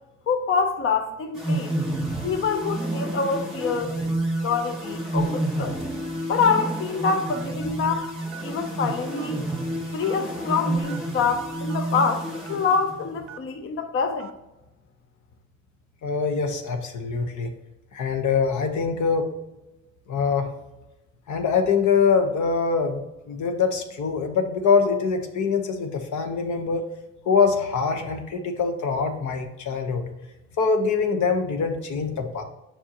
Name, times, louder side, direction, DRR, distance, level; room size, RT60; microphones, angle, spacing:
voice 1, 0.3-1.8 2.2-4.2 4.4-5.8 6.3-8.1 8.4-9.4 9.9-14.3, left 5 dB, 45° left, 6 dB, 0.7 m, -26 dB
sound 1, 1.3-13.2, right 1 dB, ahead, 2.3 m, -29 dB
Telephone, 6.5-6.8 7.3-7.5 8.3-8.7 9.2-9.3 10.0-10.2 10.9-11.0 11.7-11.8 12.5-12.6 13.3-13.5 14.2-14.4, right 9 dB, 50° right, 0.5 m, -42 dB
voice 2, 16.0-17.5 17.9-19.3 20.1-20.5 21.3-23.0 23.3-26.9 27.2-30.1 30.6-32.4, left 5 dB, 75° left, 6 dB, 1.1 m, -24 dB
7.3 x 5.4 x 2.9 m, 0.98 s
cardioid pair, 90°, 30 cm